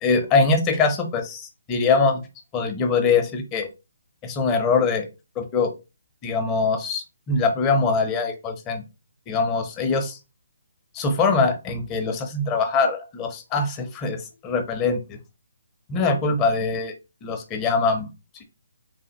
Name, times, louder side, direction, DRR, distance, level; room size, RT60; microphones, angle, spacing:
voice 1, 0.0-2.2 2.5-3.7 4.2-5.1 5.4-5.7 6.2-8.8 9.3-10.2 10.9-15.2 15.9-16.9 17.2-18.1, left 4 dB, 20° left, 5 dB, 0.7 m, -23 dB
3.7 x 3.4 x 2.8 m, 0.26 s
hypercardioid pair, 155°, 0 cm